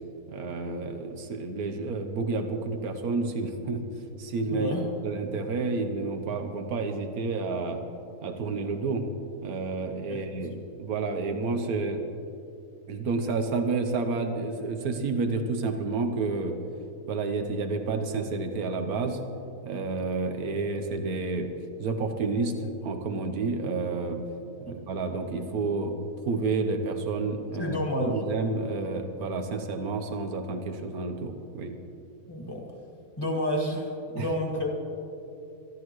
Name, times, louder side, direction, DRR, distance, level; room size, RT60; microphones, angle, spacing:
voice 1, 0.3-3.8 4.2-4.7 5.0-7.8 8.2-9.0 9.4-10.5 10.8-12.0 12.9-16.5 17.1-19.2 19.6-21.5 21.8-24.2 24.7-25.9 26.2-31.8 34.2-34.3, right 3 dB, 90° right, 6 dB, 1.5 m, -30 dB
voice 2, 4.5-4.9 10.1-10.6 24.7-24.8 27.6-28.2 32.3-32.7 33.2-34.7, equal, 15° left, -1 dB, 2.2 m, -30 dB
23.5 x 13.5 x 3.2 m, 2.7 s
omnidirectional pair, 1.5 m